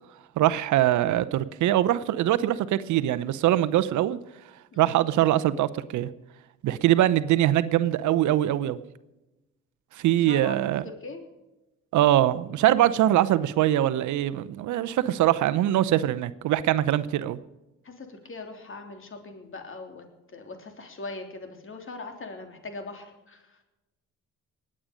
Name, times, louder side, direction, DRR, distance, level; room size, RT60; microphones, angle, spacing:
voice 1, 0.4-4.2 4.8-6.1 6.6-8.8 9.9-10.8 11.9-17.4, right 13 dB, 70° right, 14 dB, 0.8 m, -23 dB
voice 2, 10.2-11.2 17.8-20.1 20.3-23.6, left 3 dB, 40° left, 5 dB, 3.3 m, -41 dB
20.0 x 8.8 x 5.2 m, 1.0 s
supercardioid pair, 60°, 31 cm